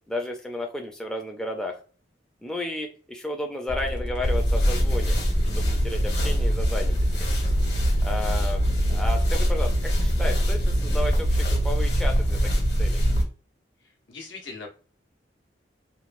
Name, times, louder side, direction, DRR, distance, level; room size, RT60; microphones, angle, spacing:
voice 1, 0.1-1.8 2.4-5.2 5.6-7.0 8.0-8.6 8.9-12.4 12.8-13.0, left 1 dB, 5° left, 1 dB, 0.3 m, -32 dB
sound 1, 3.7-11.7, equal, 80° right, 1.1 m, -35 dB
sound 2, 4.2-13.2, equal, 65° left, 1.0 m, -23 dB
voice 2, 14.1-14.7, left 4 dB, 90° left, 0 dB, 0.9 m, -39 dB
3.0 x 2.2 x 2.5 m, 0.39 s
head